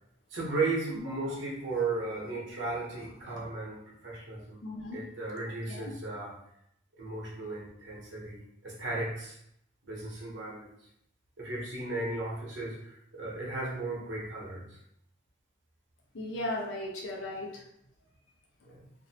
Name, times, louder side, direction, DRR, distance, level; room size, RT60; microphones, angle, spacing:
voice 1, 0.3-4.6 4.9-6.3 7.0-9.4 9.8-10.7 11.4-14.8 18.7-18.9, right 3 dB, 70° right, -5 dB, 0.9 m, -35 dB
voice 2, 4.6-5.0 5.4-5.9 16.1-17.6, left 1 dB, 85° left, -1 dB, 0.6 m, -37 dB
2.6 x 2.1 x 2.7 m, 0.75 s
head